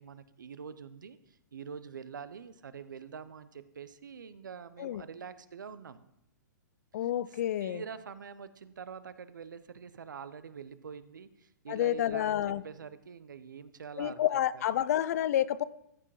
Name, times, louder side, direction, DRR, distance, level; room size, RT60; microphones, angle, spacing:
voice 1, 0.0-6.0 7.3-14.2 14.5-14.9, right 6 dB, 90° right, 0.8 m, -45 dB
voice 2, 6.9-7.8 11.7-12.6 14.0-15.6, left 11 dB, 55° left, 0.5 m, -29 dB
14.5 x 6.0 x 4.8 m
hypercardioid pair, 145°, 10 cm